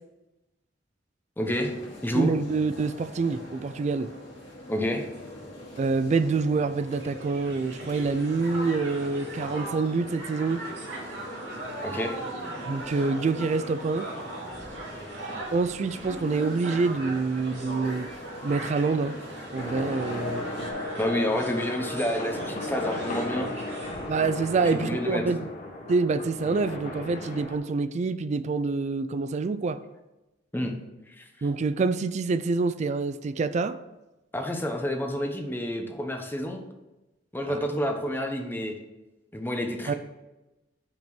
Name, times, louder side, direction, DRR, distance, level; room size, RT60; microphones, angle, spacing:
sound 1, 1.4-20.7, left 1 dB, 85° left, 2.1 m, -43 dB
voice 1, 1.4-1.7 2.0-2.3 4.7-5.1 11.8-12.2 21.0-23.5 24.6-25.2 30.5-30.7 31.1-31.3 34.3-36.6 37.3-38.7 39.3-39.9, equal, 10° left, 3 dB, 0.9 m, -29 dB
voice 2, 2.1-4.1 5.8-10.6 12.7-14.1 15.5-18.1 18.4-19.2 19.5-20.5 24.1-25.5 25.9-29.8 31.4-33.8 37.5-37.6 39.9-40.0, right 4 dB, 40° right, 12 dB, 0.3 m, -26 dB
Crowd, 6.8-24.2, right 1 dB, 70° right, 2.4 m, -38 dB
sound 2, 19.6-27.6, left 1 dB, 45° left, 1.3 m, -36 dB
5.9 x 4.4 x 6.0 m, 1.0 s
head